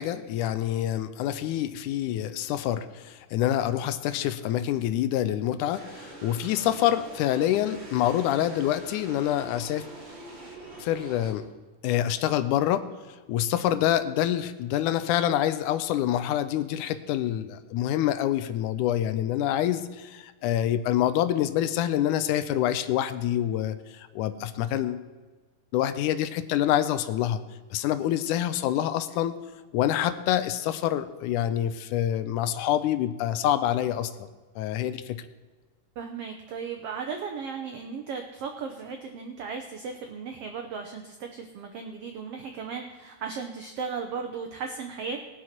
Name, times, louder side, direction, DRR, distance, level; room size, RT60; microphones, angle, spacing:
voice 1, 0.0-9.9 10.8-11.5 11.8-12.8 13.3-25.1 25.7-27.4 27.7-29.4 29.7-34.3 34.6-35.2, left 11 dB, 80° left, 12 dB, 2.0 m, -26 dB
sound 1, 5.7-11.3, right 2 dB, 20° right, 2.3 m, -44 dB
voice 2, 36.0-45.2, right 5 dB, 80° right, 4 dB, 1.3 m, -36 dB
19.0 x 6.3 x 5.9 m, 1.3 s
omnidirectional pair, 3.8 m